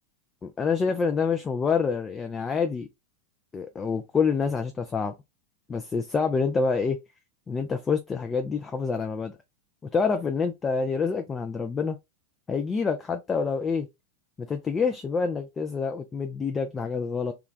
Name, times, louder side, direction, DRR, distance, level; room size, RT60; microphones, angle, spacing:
voice 1, 0.4-2.9 3.5-5.1 5.7-7.0 7.5-9.3 9.9-12.0 12.5-13.9 14.4-17.3, left 5 dB, 20° left, 0.4 m, -27 dB
3.2 x 2.3 x 3.8 m
figure-of-eight pair, 90°, 0 cm